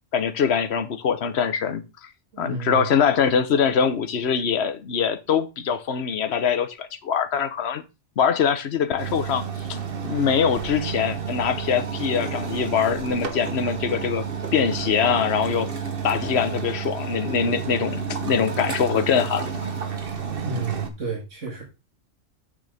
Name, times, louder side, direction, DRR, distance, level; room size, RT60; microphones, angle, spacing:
voice 1, 0.1-2.1 2.4-7.8 8.2-9.4 9.7-9.8 10.0-14.2 14.5-15.7 16.0-19.5, left 7 dB, 60° left, 1.2 m, -23 dB
voice 2, 2.3-2.9 20.4-21.6, right 4 dB, 80° right, 2.4 m, -31 dB
sound 1, 9.0-20.9, right 7 dB, 50° right, 1.3 m, -31 dB
8.4 x 6.6 x 3.4 m
omnidirectional pair, 1.3 m